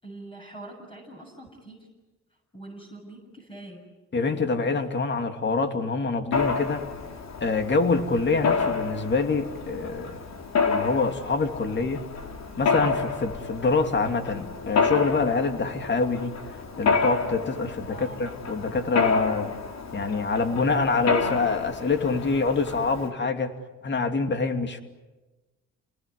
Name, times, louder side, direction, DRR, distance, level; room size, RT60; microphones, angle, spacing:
voice 1, 0.0-1.9 2.5-3.8 11.7-11.9 17.9-18.2, right 2 dB, 15° left, 0 dB, 7.2 m, -44 dB
voice 2, 4.1-6.8 7.4-10.2 10.7-12.0 12.6-16.3 16.8-19.5 19.9-23.5 23.8-24.8, left 4 dB, 35° left, 7 dB, 2.7 m, -25 dB
Mechanisms, 6.3-23.1, left 5 dB, 60° left, 4.1 m, -29 dB
29.5 x 19.5 x 9.6 m, 1.2 s
cardioid pair, 90°, 30 cm